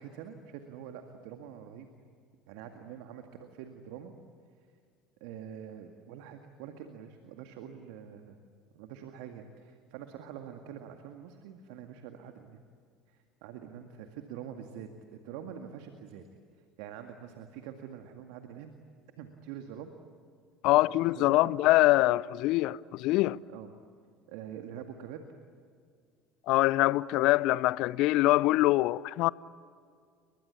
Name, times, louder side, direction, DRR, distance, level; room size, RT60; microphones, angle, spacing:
voice 1, 0.0-1.9 2.5-4.1 5.2-8.4 8.7-12.6 13.1-16.2 16.8-18.7 19.2-19.9 20.7-20.8 21.2-21.5 23.5-23.7 24.3-25.2, right 9 dB, 65° right, 2.0 m, -45 dB
voice 2, 20.6-23.4 26.5-29.3, left 18 dB, 60° left, 0.6 m, -24 dB
30.0 x 23.5 x 8.4 m
hypercardioid pair, 65°, 0 cm